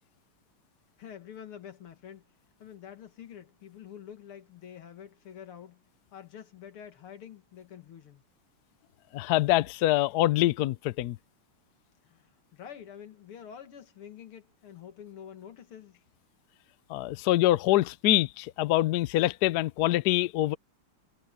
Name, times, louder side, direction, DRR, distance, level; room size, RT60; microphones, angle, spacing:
voice 1, 1.0-2.3 2.6-8.2 12.0-16.0, left 9 dB, 90° left, 2.7 m, -47 dB
voice 2, 9.1-11.2 16.9-20.6, left 15 dB, 70° left, 0.9 m, -25 dB
omnidirectional pair, 2.3 m